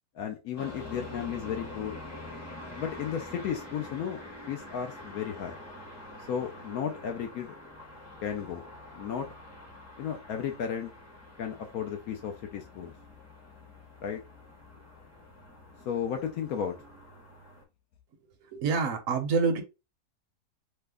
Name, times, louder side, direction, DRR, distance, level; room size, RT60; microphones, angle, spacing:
voice 1, 0.1-2.0 2.8-4.2 4.5-5.6 6.3-7.5 8.2-8.6 8.9-9.3 10.0-10.9 11.4-12.9 14.0-14.2 15.9-16.8, left 8 dB, 70° left, 1.0 m, -34 dB
sound 1, 0.6-17.6, left 2 dB, 15° left, 0.7 m, -46 dB
voice 2, 18.4-19.6, right 5 dB, 60° right, 1.0 m, -27 dB
3.3 x 2.0 x 3.4 m
omnidirectional pair, 1.7 m